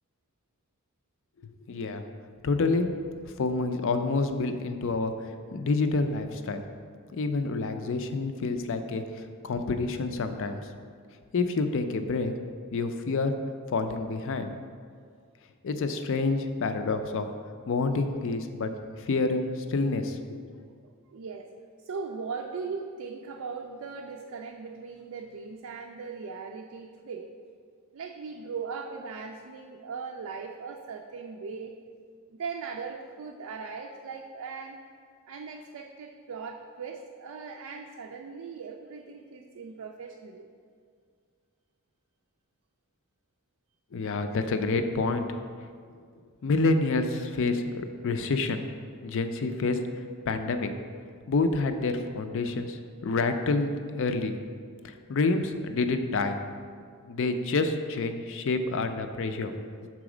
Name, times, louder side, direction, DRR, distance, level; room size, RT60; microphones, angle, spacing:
voice 1, 1.7-2.0 2.4-2.9 3.4-5.1 5.5-6.6 7.1-10.6 11.3-12.3 12.7-13.3 13.7-14.5 15.6-17.3 17.7-18.7 19.0-20.4 43.9-45.3 46.4-48.6 49.0-49.8 50.3-50.7 51.3-54.4 54.8-56.4 57.1-59.9, left 3 dB, 65° left, 8 dB, 0.4 m, -28 dB
voice 2, 21.1-21.5 21.8-27.3 27.9-31.7 32.3-34.8 35.3-40.5, right 5 dB, 75° right, 2 dB, 0.4 m, -39 dB
6.0 x 4.0 x 4.9 m, 2.1 s
head